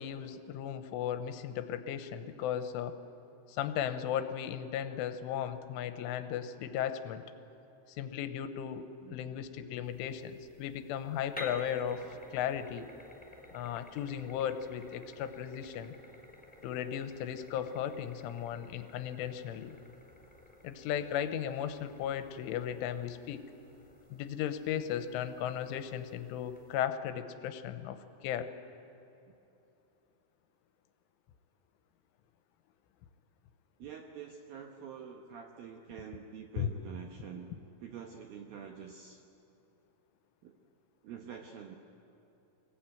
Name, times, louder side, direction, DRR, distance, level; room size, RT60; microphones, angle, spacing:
voice 1, 0.0-3.0 3.5-7.2 8.0-12.9 13.5-16.0 16.6-19.8 20.6-23.5 24.1-28.5 36.6-36.7, left 9 dB, 85° left, 10 dB, 3.3 m, -36 dB
sound 1, 9.8-26.8, left 1 dB, ahead, 2.4 m, -53 dB
voice 2, 33.8-37.5 37.8-39.2 40.4-40.6 41.0-41.8, right 7 dB, 75° right, 3 dB, 2.2 m, -46 dB
24.0 x 20.0 x 9.2 m, 3.0 s
omnidirectional pair, 5.7 m